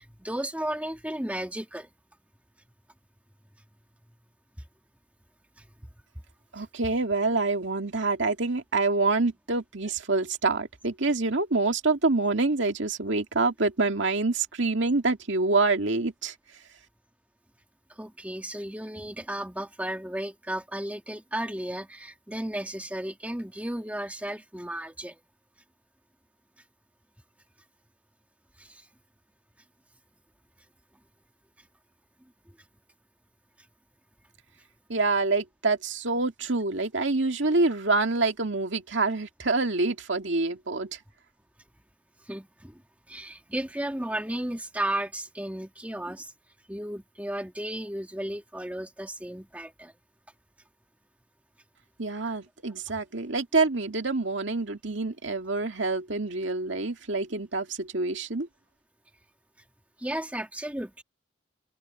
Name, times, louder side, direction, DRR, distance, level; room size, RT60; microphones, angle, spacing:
voice 1, 0.0-1.9 5.6-5.7 6.6-6.7 17.9-25.2 28.6-28.9 42.2-42.8 43.1-46.3 46.7-49.9 60.0-61.0, right 1 dB, 5° right, 1.5 m, -34 dB
voice 2, 6.5-16.3 34.9-41.0 52.0-58.5, right 3 dB, 65° right, 2.2 m, -26 dB
open air
head